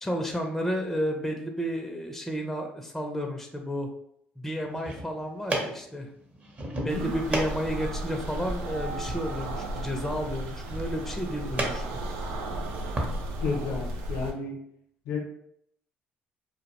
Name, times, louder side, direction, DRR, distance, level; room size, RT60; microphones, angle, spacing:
voice 1, 0.0-3.9 4.4-6.1 6.8-11.8, equal, 5° left, 2 dB, 0.4 m, -31 dB
sound 1, 4.6-13.1, right 1 dB, 30° right, 0.7 m, -36 dB
voice 2, 6.8-7.1 13.4-14.6 15.1-15.2, left 4 dB, 85° left, 0 dB, 0.5 m, -32 dB
sound 2, 6.9-14.3, right 1 dB, 85° right, 0.3 m, -34 dB
sound 3, 8.0-12.3, right 4 dB, 65° right, 0.7 m, -46 dB
2.2 x 2.1 x 2.8 m, 0.71 s
supercardioid pair, 70°, 5 cm